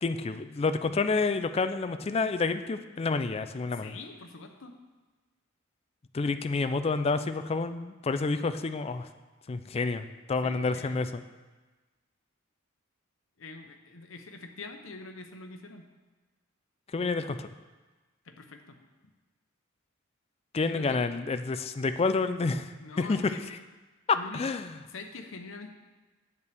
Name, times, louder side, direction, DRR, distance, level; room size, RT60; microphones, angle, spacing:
voice 1, 0.0-4.0 6.1-9.1 9.5-11.2 16.9-17.5 20.5-23.3 24.3-24.7, left 3 dB, 30° left, 10 dB, 0.4 m, -29 dB
voice 2, 3.7-4.7 10.4-11.1 13.4-15.9 18.2-18.8 20.7-21.0 22.8-23.4 24.1-25.7, left 3 dB, 65° left, 5 dB, 0.9 m, -45 dB
9.5 x 8.2 x 3.5 m, 1.3 s
head